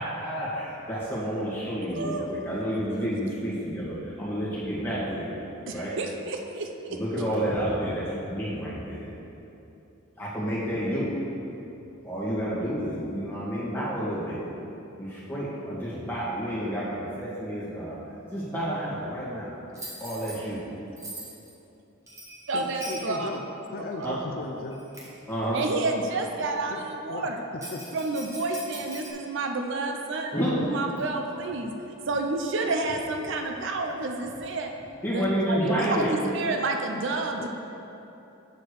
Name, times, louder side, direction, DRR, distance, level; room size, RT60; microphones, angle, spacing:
voice 1, 0.0-5.3 5.7-5.9 6.9-9.1 10.2-11.1 12.0-14.4 15.0-18.0 18.3-19.5 20.0-20.6 24.0-24.2 25.3-25.6 30.3-30.6 35.0-36.1, equal, 10° left, -9 dB, 1.8 m, -30 dB
voice 2, 1.9-2.3 3.0-3.1 5.7-6.7 22.5-23.3 24.0-24.1 25.5-27.4 27.9-31.7 32.1-34.7 35.1-37.5, right 3 dB, 60° right, 4 dB, 0.5 m, -30 dB
Bell, 19.7-20.4 21.0-21.5 22.1-23.1 24.0-24.1 24.7-25.2 27.6-29.1, right 1 dB, 15° right, 1.1 m, -41 dB
voice 3, 22.5-24.8 26.7-26.8 27.1-27.3 27.7-27.8 37.4-37.5, left 3 dB, 45° left, 2 dB, 0.4 m, -36 dB
6.6 x 4.3 x 6.5 m, 2.9 s
head